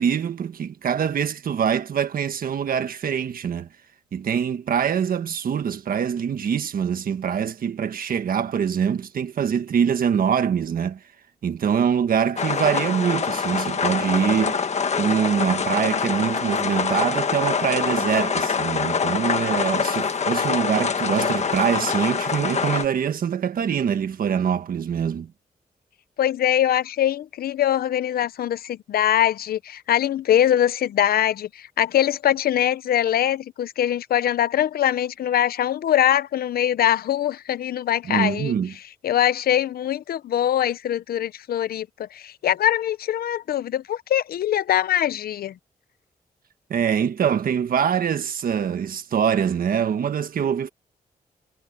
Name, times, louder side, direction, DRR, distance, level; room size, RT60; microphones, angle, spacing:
voice 1, 0.0-3.7 4.1-11.0 11.4-14.6 15.0-25.3 38.0-38.7 46.7-50.7, right 8 dB, 70° right, 1.5 m, -24 dB
sound 1, 12.4-22.8, left 6 dB, 45° left, 1.4 m, -25 dB
voice 2, 26.2-38.6 39.0-45.5, left 11 dB, 90° left, 0.6 m, -22 dB
wide cardioid pair, 125°, 15 cm